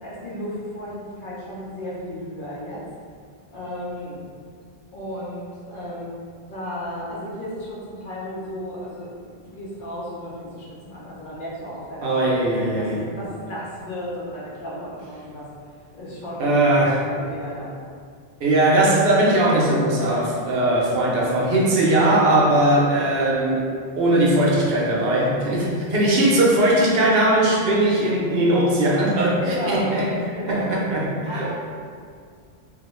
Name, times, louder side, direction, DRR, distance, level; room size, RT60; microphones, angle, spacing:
voice 1, 0.0-2.8 3.5-4.2 4.9-6.1 6.5-12.3 12.8-15.5 15.9-16.7 17.0-17.8 26.0-26.2 29.4-29.9 30.3-30.7 31.3-31.5, equal, 60° left, -6 dB, 0.7 m, -34 dB
voice 2, 12.0-13.0 16.4-17.0 18.4-23.7 24.0-30.1 30.5-31.5, right 1 dB, 70° right, -4 dB, 0.8 m, -19 dB
2.3 x 2.2 x 3.0 m, 2.1 s
omnidirectional pair, 1.0 m